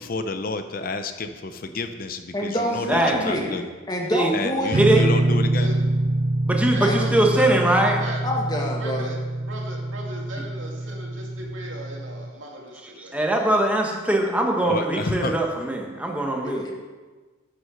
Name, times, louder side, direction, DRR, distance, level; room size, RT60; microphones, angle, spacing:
voice 1, 0.0-3.7 4.3-5.7 14.6-15.4, left 3 dB, 45° left, 9 dB, 0.6 m, -30 dB
voice 2, 2.3-3.6 3.9-5.3 6.8-7.3 8.2-9.1 16.4-16.7, left 1 dB, 20° left, 0 dB, 1.4 m, -27 dB
voice 3, 2.9-3.5 4.1-4.3 4.7-5.0 6.5-8.0 13.1-16.7, right 1 dB, 5° right, 0 dB, 1.2 m, -21 dB
sound 1, 4.7-12.3, right 1 dB, 45° right, 0.4 m, -25 dB
voice 4, 6.7-8.2 8.8-13.2, right 1 dB, 70° right, -1 dB, 2.3 m, -37 dB
11.0 x 6.2 x 6.2 m, 1.4 s
head